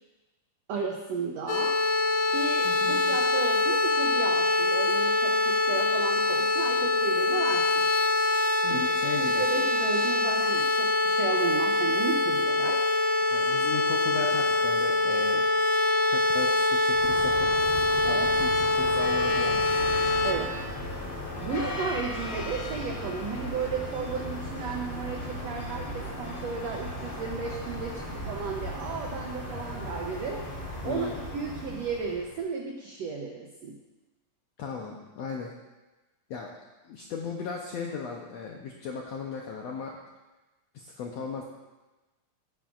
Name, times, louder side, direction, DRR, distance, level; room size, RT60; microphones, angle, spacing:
voice 1, 0.7-1.7 2.3-7.9 8.6-8.8 9.2-12.9 18.0-18.3 20.2-20.5 20.9-21.1 21.4-30.4 30.8-33.8, right 5 dB, 85° right, 1 dB, 1.4 m, -34 dB
sound 1, 1.5-20.3, left 2 dB, 65° left, 2.0 m, -24 dB
voice 2, 2.6-3.0 8.6-9.4 13.3-15.5 16.1-17.6 18.0-19.8 30.8-31.2 34.6-35.5 36.3-36.5 36.8-40.0 40.7-41.4, left 5 dB, 85° left, 0 dB, 1.4 m, -37 dB
sound 2, 16.9-32.4, left 1 dB, 30° left, 0.9 m, -36 dB
16.0 x 9.0 x 2.5 m, 1.1 s
omnidirectional pair, 4.0 m